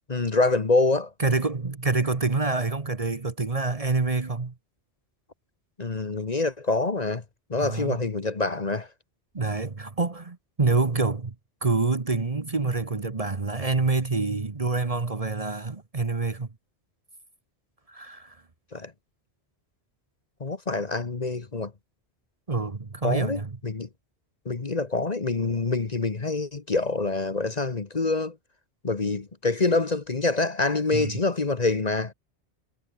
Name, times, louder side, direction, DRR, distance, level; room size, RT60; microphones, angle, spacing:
voice 1, 0.1-1.1 5.8-7.2 7.5-8.9 18.7-18.9 20.4-21.7 23.0-23.9 24.4-28.4 28.8-32.1, left 3 dB, 40° left, 1.3 m, -26 dB
voice 2, 1.2-4.5 7.6-8.0 9.3-11.3 11.6-16.5 17.9-18.4 22.5-23.5 30.9-31.1, right 3 dB, 35° right, 1.2 m, -26 dB
omnidirectional pair, 1.1 m